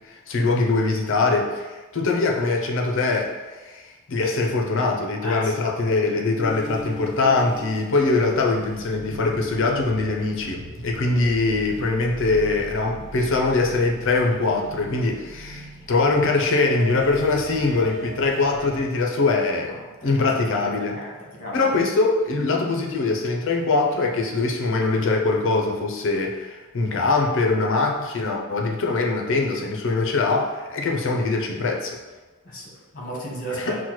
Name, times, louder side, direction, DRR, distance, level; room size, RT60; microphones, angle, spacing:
voice 1, 0.0-21.0 21.5-32.0 33.5-33.7, left 3 dB, 60° left, 1 dB, 0.5 m, -22 dB
voice 2, 5.2-5.5 19.6-19.8 20.0-20.1 20.6-21.7 32.4-33.7, right 1 dB, 40° left, -4 dB, 1.2 m, -34 dB
sound 1, 6.4-18.9, left 1 dB, 40° right, 0.9 m, -39 dB
5.9 x 2.1 x 3.0 m, 1.2 s
head